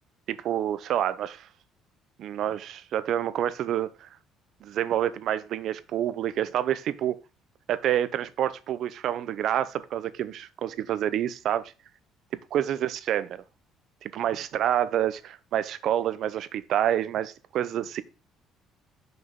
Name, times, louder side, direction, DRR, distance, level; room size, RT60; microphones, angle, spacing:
voice 1, 0.3-1.5 2.2-4.1 4.6-7.2 7.7-11.7 12.5-13.4 14.0-18.0, right 11 dB, 65° right, 0.6 m, -28 dB
6.0 x 5.4 x 3.6 m
cardioid pair, 105°, 0 cm